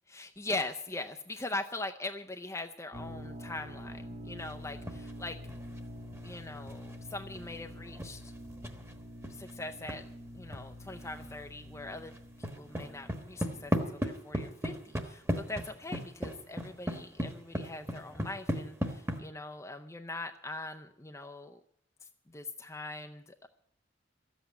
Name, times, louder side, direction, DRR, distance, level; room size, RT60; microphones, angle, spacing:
voice 1, 0.1-5.4 6.2-8.3 9.3-10.0 10.3-12.1 12.4-21.6 22.3-23.5, left 2 dB, 15° left, 5 dB, 0.5 m, -41 dB
sound 1, 2.9-13.8, equal, 35° right, 1.5 m, -46 dB
sound 2, 4.4-5.2 5.5-10.0 10.5-10.6 10.9-11.5 11.7-19.2, equal, 15° right, 1.2 m, -37 dB
13.5 x 8.1 x 9.6 m, 0.71 s
head